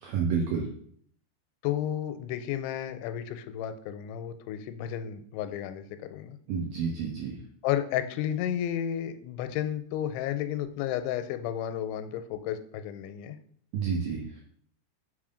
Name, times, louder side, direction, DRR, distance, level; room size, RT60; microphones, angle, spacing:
voice 1, 0.0-0.7 6.5-7.4 13.7-14.2, right 6 dB, 85° right, 0 dB, 2.0 m, -29 dB
voice 2, 1.6-6.4 7.6-13.4, left 10 dB, 90° left, 10 dB, 2.9 m, -32 dB
6.3 x 3.8 x 4.9 m, 0.62 s
omnidirectional pair, 5.1 m